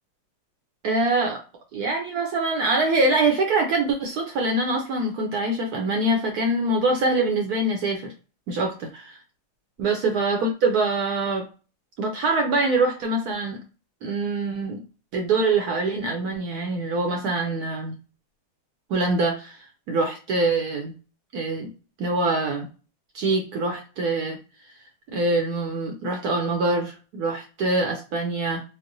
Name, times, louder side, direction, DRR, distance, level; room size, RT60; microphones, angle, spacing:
voice 1, 0.8-1.4 1.7-8.1 8.5-9.2 9.8-11.5 12.0-13.6 14.0-14.8 15.1-18.0 18.9-19.6 19.9-21.0 21.3-21.7 22.0-22.7 23.1-24.4 25.1-28.6, right 2 dB, 75° right, 0.9 m, -24 dB
4.5 x 2.0 x 2.6 m
omnidirectional pair, 2.2 m